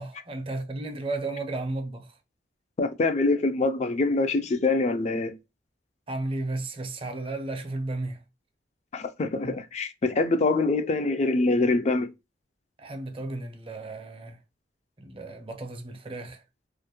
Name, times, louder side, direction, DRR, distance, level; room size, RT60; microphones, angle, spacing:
voice 1, 0.0-2.2 6.1-8.2 9.4-9.5 12.8-14.4 15.0-16.4, right 2 dB, 30° right, 0.5 m, -34 dB
voice 2, 2.8-5.3 8.9-12.1, left 3 dB, 40° left, 0.3 m, -24 dB
2.4 x 2.1 x 2.7 m
head